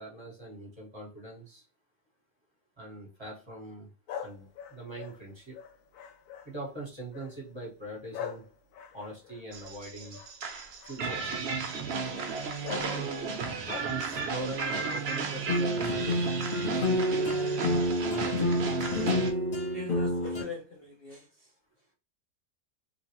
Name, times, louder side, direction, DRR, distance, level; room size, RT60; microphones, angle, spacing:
voice 1, 0.0-1.6 2.8-3.9 4.2-5.6 6.4-8.4 8.9-10.2 10.8-11.6 12.8-13.4 13.9-16.8, right 1 dB, 20° right, -3 dB, 1.2 m, -42 dB
sound 1, 4.1-6.6 7.1-7.5 8.1-10.3 10.8-11.2 12.1-12.3 12.6-13.0 13.4-14.3, left 8 dB, 75° left, 1.1 m, -42 dB
sound 2, 9.5-19.3, right 5 dB, 55° right, 0.7 m, -34 dB
sound 3, 15.5-20.4, left 1 dB, 25° left, 1.2 m, -28 dB
voice 2, 19.7-21.2, left 4 dB, 50° left, 0 dB, 0.7 m, -41 dB
3.1 x 2.5 x 2.9 m, 0.32 s
omnidirectional pair, 1.7 m